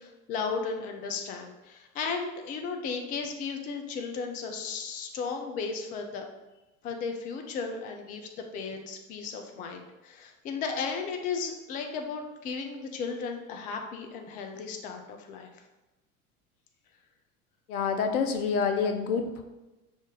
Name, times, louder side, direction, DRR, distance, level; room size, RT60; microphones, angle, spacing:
voice 1, 0.0-6.3 6.8-15.6, left 5 dB, 20° left, 4 dB, 0.4 m, -35 dB
voice 2, 17.7-19.4, left 5 dB, 75° left, 6 dB, 0.6 m, -27 dB
4.9 x 2.6 x 3.7 m, 1.1 s
figure-of-eight pair, 80°, 45 cm